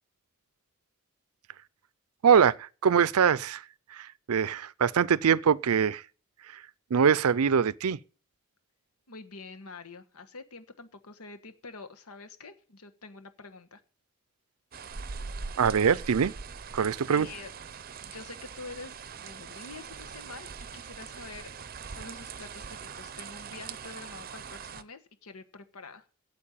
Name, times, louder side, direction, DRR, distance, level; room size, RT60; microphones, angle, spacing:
voice 1, 2.2-3.6 3.9-6.0 6.9-8.0 15.6-16.3 16.7-17.3, right 7 dB, 85° right, 0.5 m, -23 dB
voice 2, 9.1-13.8 17.1-17.5 18.0-21.5 21.9-26.1, left 3 dB, 90° left, 1.4 m, -46 dB
sound 1, 14.7-24.8, right 5 dB, 40° right, 0.6 m, -42 dB
8.8 x 8.2 x 8.5 m
head